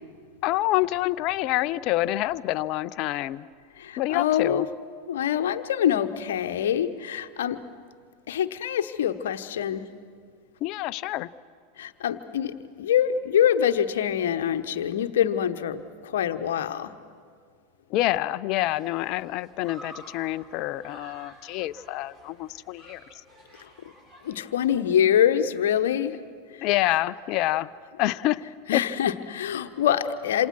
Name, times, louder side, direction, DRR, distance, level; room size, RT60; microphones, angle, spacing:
voice 1, 0.4-3.5 4.0-4.7 10.6-11.3 17.9-23.0 26.6-27.7 28.0-28.5 28.7-28.8, left 16 dB, 50° left, 15 dB, 0.6 m, -27 dB
voice 2, 3.8-4.7 5.1-7.6 8.3-9.8 11.8-16.9 24.2-26.1 26.6-26.7 28.7-30.5, left 9 dB, 70° left, 9 dB, 1.1 m, -25 dB
Human group actions, 18.5-25.1, right 1 dB, 30° right, 7.9 m, -51 dB
27.5 x 27.0 x 6.2 m, 2.1 s
hypercardioid pair, 90°, 0 cm